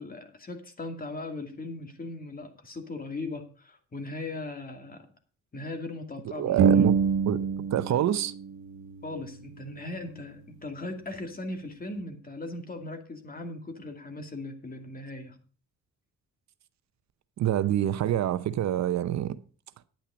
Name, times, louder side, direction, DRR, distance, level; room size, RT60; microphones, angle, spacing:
voice 1, 0.0-5.1 5.5-6.7 9.0-15.4, left 2 dB, 30° left, 2.4 m, -38 dB
voice 2, 6.4-7.0 7.3-7.4 7.7-8.3 17.4-19.4, right 11 dB, 65° right, 0.7 m, -26 dB
sound 1, 6.6-8.1 8.3-10.1, right 6 dB, 90° right, 1.2 m, -26 dB
10.0 x 9.0 x 5.0 m
cardioid pair, 90°, 30 cm